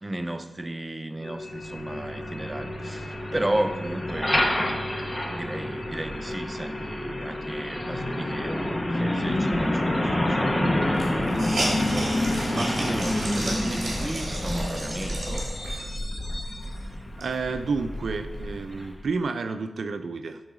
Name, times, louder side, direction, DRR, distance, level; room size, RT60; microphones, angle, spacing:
voice 1, 0.0-4.3 5.3-15.5, right 1 dB, 15° right, 0.4 m, -34 dB
sound 1, 1.2-10.6, left 2 dB, 40° left, 2.2 m, -39 dB
Truck, 1.4-19.1, left 1 dB, 20° left, 1.0 m, -28 dB
Hiss, 10.1-10.2 10.4-10.5 10.9-16.0 16.5-16.6 17.0-18.4, right 1 dB, 50° right, 2.8 m, -33 dB
voice 2, 17.2-20.4, right 4 dB, 75° right, 0.5 m, -30 dB
12.0 x 4.0 x 4.8 m
wide cardioid pair, 110°, 0 cm